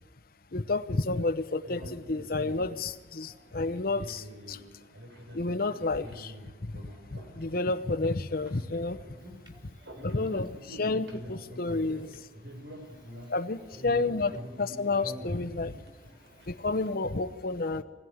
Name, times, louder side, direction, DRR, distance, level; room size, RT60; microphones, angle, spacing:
voice 1, 0.5-4.6 5.3-6.3 6.6-6.7 7.4-9.0 10.0-12.1 13.3-14.3 14.6-15.7 16.5-17.8, left 3 dB, 55° left, 8 dB, 0.9 m, -30 dB
sound 1, 1.6-16.9, equal, 85° right, 4.3 m, -46 dB
voice 2, 9.5-10.1 11.7-12.0 12.7-13.3 15.6-16.5, equal, 25° right, 2 dB, 4.1 m, -57 dB
24.5 x 17.0 x 9.5 m, 1.1 s
head